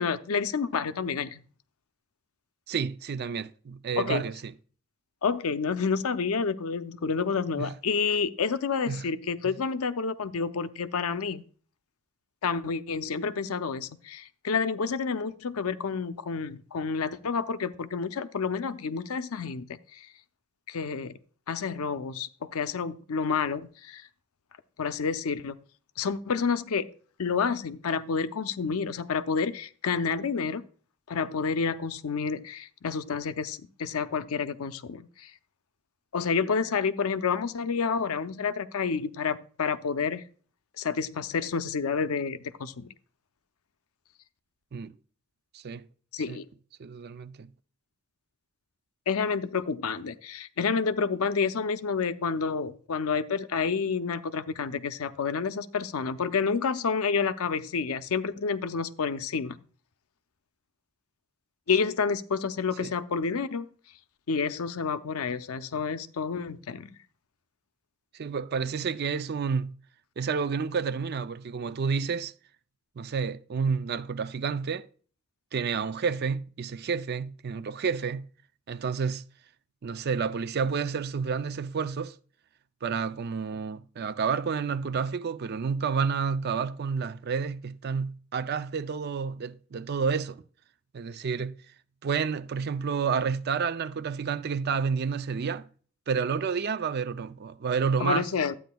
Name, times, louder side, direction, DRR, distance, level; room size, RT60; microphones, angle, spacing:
voice 1, 0.0-1.4 4.0-4.2 5.2-11.4 12.4-20.1 20.7-21.1 21.5-24.1 24.8-25.6 26.0-26.9 27.2-30.7 31.1-35.3 36.1-40.3 40.8-42.9 46.1-46.5 49.1-59.6 61.7-63.7 64.3-66.9 98.0-98.5, left 5 dB, 80° left, 0.6 m, -29 dB
voice 2, 2.7-4.5 7.6-7.7 8.9-9.0 9.4-9.5 44.7-44.9 45.5-45.9 46.3-46.4 46.8-47.5 62.8-62.9 68.1-69.8 70.2-72.3 73.0-74.9 75.5-78.3 78.7-79.2 79.8-82.2 82.8-90.4 90.9-91.6 92.0-95.7 96.1-98.3, right 5 dB, 45° right, 0.4 m, -30 dB
12.0 x 9.0 x 2.3 m
head